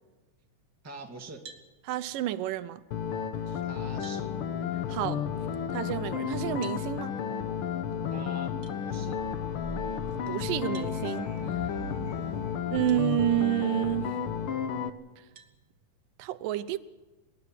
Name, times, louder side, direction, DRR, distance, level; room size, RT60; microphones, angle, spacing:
voice 1, 0.8-1.4 3.6-4.3 8.1-8.5 8.8-9.2, right 4 dB, 5° right, 1.3 m, -44 dB
sound 1, 1.4-1.7 3.4-3.5 4.0-4.2 6.6-6.8 8.6-8.8 10.7-11.0 12.9-13.0 13.7-13.8 15.4-15.6, right 5 dB, 50° right, 1.8 m, -49 dB
voice 2, 1.9-2.8 4.9-5.2 5.7-7.1 10.3-11.3 12.7-14.2 16.2-16.8, right 13 dB, 85° right, 2.4 m, -29 dB
sound 2, 2.9-14.9, left 8 dB, 80° left, 1.2 m, -32 dB
sound 3, 9.2-12.5, right 1 dB, 25° left, 7.0 m, -42 dB
24.0 x 11.0 x 10.0 m
omnidirectional pair, 3.8 m